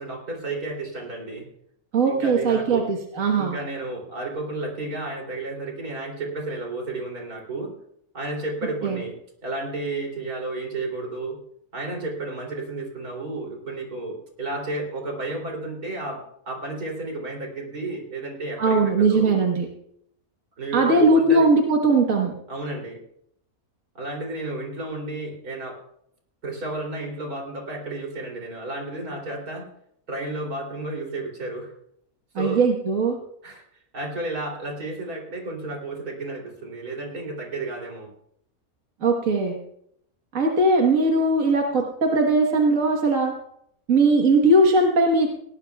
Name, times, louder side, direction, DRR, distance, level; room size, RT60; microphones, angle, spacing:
voice 1, 0.0-1.4 2.1-2.9 3.3-7.7 8.1-9.2 9.4-11.4 11.7-19.4 20.6-21.4 22.5-23.0 24.0-25.8 26.4-29.7 30.1-31.7 32.4-32.6 33.4-33.6 33.9-38.1, right 2 dB, 85° right, 0 dB, 3.6 m, -32 dB
voice 2, 1.9-3.6 8.8-9.0 18.6-19.7 20.7-22.3 32.3-33.2 39.0-39.6 40.3-43.3 43.9-45.3, right 2 dB, 65° right, 1 dB, 1.8 m, -19 dB
19.5 x 17.5 x 2.3 m, 0.71 s
omnidirectional pair, 1.5 m